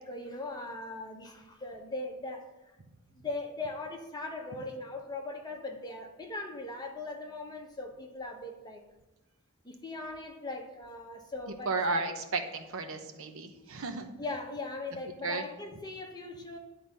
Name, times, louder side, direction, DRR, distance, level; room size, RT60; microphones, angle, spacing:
voice 1, 0.0-2.5 3.1-8.8 9.6-11.7 14.2-16.6, left 2 dB, 20° left, 2 dB, 1.0 m, -39 dB
voice 2, 11.7-14.1 15.2-15.4, right 3 dB, 65° right, 6 dB, 0.9 m, -33 dB
11.0 x 4.0 x 6.6 m, 1.0 s
head